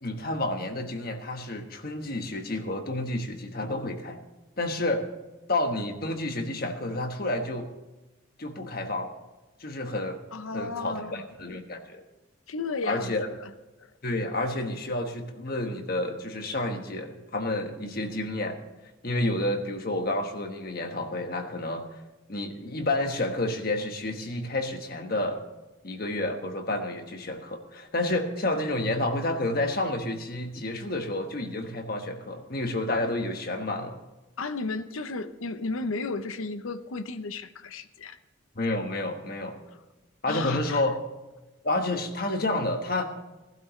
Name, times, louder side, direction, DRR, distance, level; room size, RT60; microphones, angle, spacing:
voice 1, 0.0-4.2 4.6-5.1 5.5-7.7 8.4-9.1 9.6-10.2 10.5-12.0 12.9-13.3 14.0-18.6 19.0-21.8 22.3-25.4 25.8-34.0 38.5-39.6 40.2-41.0 41.6-43.1, left 1 dB, 45° left, 5 dB, 1.3 m, -30 dB
voice 2, 10.3-11.3 12.5-13.5 13.8-13.9 34.4-38.2 40.2-40.8, left 3 dB, 80° left, 11 dB, 0.7 m, -34 dB
18.5 x 12.0 x 3.2 m, 1.1 s
head